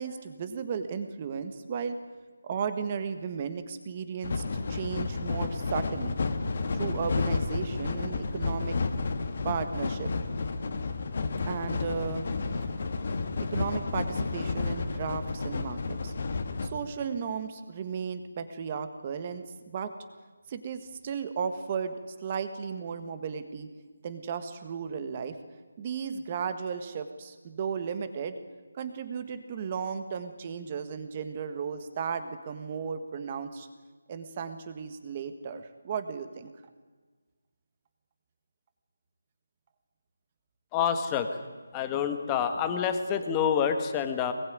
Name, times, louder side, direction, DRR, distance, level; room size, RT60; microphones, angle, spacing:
voice 1, 0.0-2.0 2.4-4.4 4.7-6.2 6.7-8.8 9.4-10.1 11.5-12.2 13.5-16.1 16.6-19.9 20.5-23.7 24.0-25.4 25.8-28.4 28.7-33.7 34.1-36.5, right 6 dB, 20° right, 10 dB, 1.6 m, -35 dB
sound 1, 4.2-16.7, left 4 dB, 35° left, 1.9 m, -31 dB
voice 2, 40.7-41.4 41.7-44.3, left 8 dB, 10° left, 7 dB, 1.3 m, -27 dB
24.0 x 21.5 x 9.5 m, 1.4 s
figure-of-eight pair, 175°, 0 cm